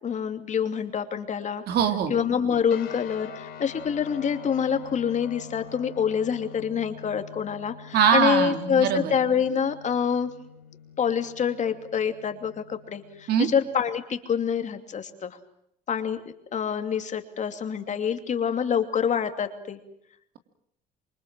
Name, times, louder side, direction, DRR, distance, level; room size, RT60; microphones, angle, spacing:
voice 1, 0.0-1.6 2.1-10.3 11.0-15.4 15.9-16.2 16.5-19.8, left 7 dB, 45° left, 7 dB, 2.8 m, -26 dB
voice 2, 1.7-2.1 7.9-9.1 13.3-13.5, right 7 dB, 70° right, 7 dB, 3.3 m, -22 dB
sound 1, 2.7-13.9, left 8 dB, 70° left, 5.6 m, -45 dB
27.5 x 23.5 x 7.6 m, 0.74 s
cardioid pair, 110°, 17 cm